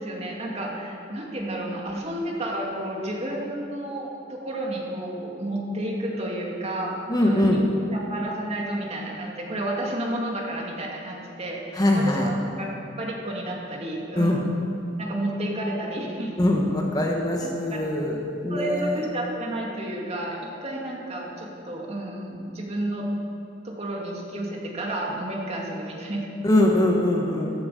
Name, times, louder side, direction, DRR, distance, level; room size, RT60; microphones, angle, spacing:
voice 1, 0.0-12.7 13.0-14.5 15.0-16.5 17.4-17.8 18.5-23.1 23.6-26.3, right 1 dB, 35° right, -2 dB, 2.5 m, -31 dB
voice 2, 7.1-7.6 11.7-12.3 14.2-14.4 16.4-18.2 18.4-19.0 26.4-27.5, left 1 dB, 20° left, 0 dB, 1.5 m, -22 dB
15.0 x 12.0 x 7.0 m, 2.8 s
head